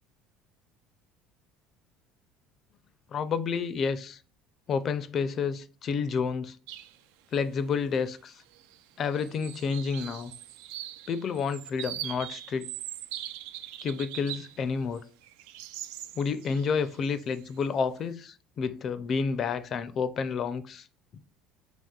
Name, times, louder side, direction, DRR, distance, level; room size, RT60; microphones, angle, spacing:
voice 1, 3.1-4.2 4.7-6.6 7.3-8.4 9.0-10.3 11.1-12.7 13.8-15.0 16.1-20.9 21.1-21.2, left 5 dB, 40° left, 0.4 m, -30 dB
sound 1, 6.7-7.0 7.4-7.5 8.4-8.8 9.1-14.6 14.9-17.6, right 13 dB, 85° right, 0.3 m, -41 dB
5.7 x 2.9 x 2.3 m
cardioid pair, 135°, 0 cm